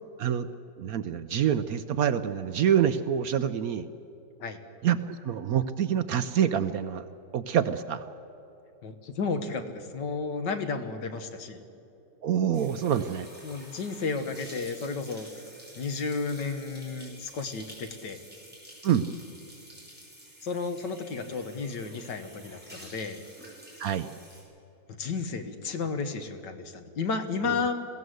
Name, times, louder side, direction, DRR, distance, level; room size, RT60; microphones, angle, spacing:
voice 1, 0.8-3.9 4.8-7.1 7.3-8.0 12.2-13.3 18.8-19.1 23.8-24.1, right 9 dB, 65° right, 11 dB, 0.9 m, -26 dB
voice 2, 8.8-11.6 13.4-15.3 15.8-18.2 20.4-23.2 25.0-27.7, left 4 dB, 75° left, 7 dB, 1.9 m, -32 dB
sound 1, 12.5-24.4, equal, 5° right, 5.5 m, -50 dB
21.5 x 16.0 x 8.0 m, 2.8 s
omnidirectional pair, 1.9 m